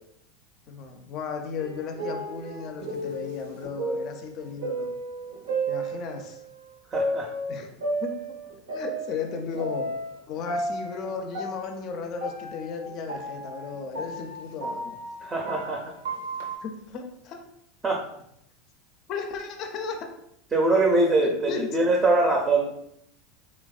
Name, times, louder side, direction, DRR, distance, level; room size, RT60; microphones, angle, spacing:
voice 1, 0.7-4.9 5.7-6.4 7.5-7.7 8.0-8.3 8.7-9.9 10.3-15.0 16.6-17.4 19.1-20.0 21.2-21.8, left 5 dB, 50° left, 5 dB, 0.4 m, -35 dB
sound 1, 1.6-6.4 6.9-10.2 10.4-16.6, right 1 dB, 75° right, 0.6 m, -33 dB
voice 2, 6.9-7.3 15.2-15.9 17.8-18.0 20.5-22.7, right 2 dB, 20° right, 0 dB, 0.5 m, -23 dB
3.3 x 2.1 x 2.3 m, 0.74 s
hypercardioid pair, 85°, 0 cm